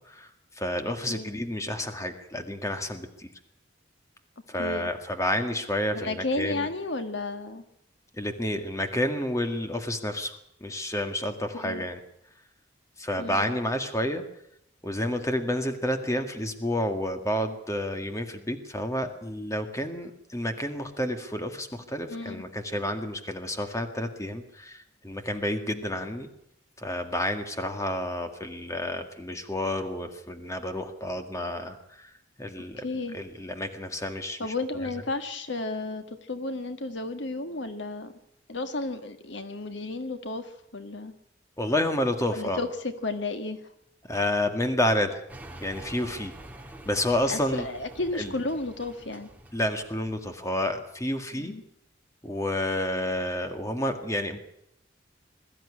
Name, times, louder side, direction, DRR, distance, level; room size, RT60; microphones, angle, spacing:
voice 1, 0.6-3.3 4.5-6.7 8.2-10.3 10.6-12.0 13.0-14.2 14.8-26.3 26.8-32.1 32.4-32.8 33.1-34.5 41.6-42.6 44.1-45.2 45.6-46.3 46.9-47.7 48.1-48.3 49.5-51.5 52.2-54.4, left 1 dB, 15° left, 7 dB, 1.9 m, -30 dB
voice 2, 4.6-4.9 5.9-7.6 11.6-11.8 13.2-13.6 22.1-22.4 32.8-33.2 34.4-38.1 38.5-41.1 42.3-43.6 47.3-49.3 51.3-51.6, left 2 dB, 70° left, 8 dB, 1.7 m, -33 dB
sound 1, 45.3-51.0, right 1 dB, 10° right, 1.9 m, -46 dB
21.5 x 14.0 x 9.8 m, 0.76 s
head